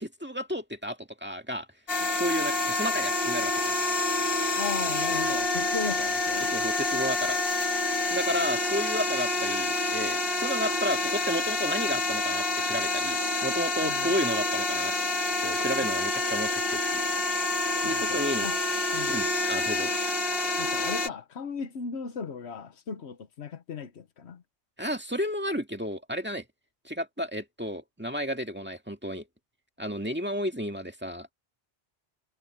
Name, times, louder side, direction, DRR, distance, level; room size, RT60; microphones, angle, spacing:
voice 1, 0.0-1.7 2.2-3.7 6.4-7.4 8.1-14.9 15.4-16.8 17.8-18.5 19.1-19.9 24.8-26.4 26.8-29.2 29.8-31.3, equal, 10° right, 2.0 m, -32 dB
sound 1, 1.9-21.1, left 2 dB, 60° left, 2.1 m, -28 dB
voice 2, 4.6-6.5 13.8-14.1 17.8-18.6 18.9-19.3 20.6-24.4, left 6 dB, 85° left, 1.3 m, -37 dB
omnidirectional pair, 1.1 m